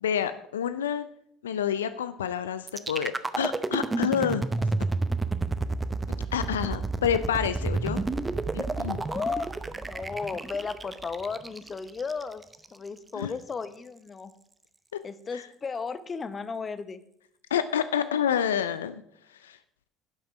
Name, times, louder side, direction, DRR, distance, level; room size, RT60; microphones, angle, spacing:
voice 1, 0.0-1.0 1.4-3.1 3.4-4.4 6.3-8.0 8.5-9.0 13.2-13.3 15.3-15.4 17.5-19.0 19.4-19.6, left 8 dB, 85° left, 12 dB, 0.4 m, -28 dB
sound 1, 2.7-12.7, right 3 dB, 15° right, 0.7 m, -30 dB
voice 2, 9.1-9.5 9.8-12.4 12.7-14.3 15.0-17.0, left 5 dB, 30° left, 13 dB, 0.8 m, -34 dB
11.5 x 6.0 x 4.9 m, 0.73 s
hypercardioid pair, 65°, 0 cm